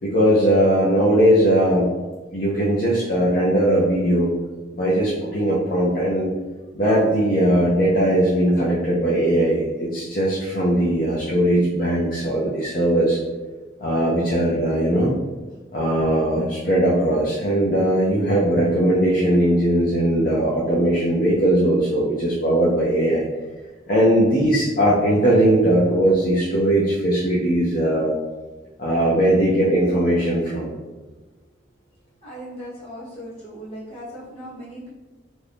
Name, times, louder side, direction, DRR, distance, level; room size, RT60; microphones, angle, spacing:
voice 1, 0.0-1.9 2.3-4.3 4.7-6.3 6.8-13.2 13.8-15.1 15.7-23.2 23.9-28.1 28.8-30.7, right 1 dB, 45° left, -6 dB, 0.5 m, -19 dB
voice 2, 32.2-34.9, equal, 30° left, -9 dB, 1.2 m, -38 dB
2.7 x 2.5 x 3.4 m, 1.3 s
head